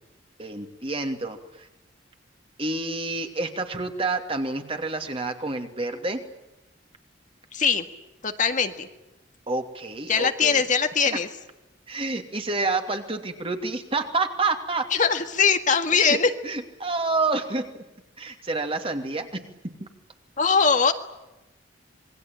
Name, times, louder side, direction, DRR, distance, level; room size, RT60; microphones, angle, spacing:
voice 1, 0.4-1.7 2.6-6.2 9.5-10.6 11.9-14.9 15.9-16.2 16.4-17.8 18.2-19.9, right 3 dB, 30° right, 5 dB, 2.8 m, -29 dB
voice 2, 7.5-7.9 8.2-8.9 10.1-11.3 14.9-16.3 20.4-20.9, left 5 dB, 40° left, 7 dB, 1.9 m, -21 dB
27.0 x 22.0 x 9.0 m, 0.96 s
head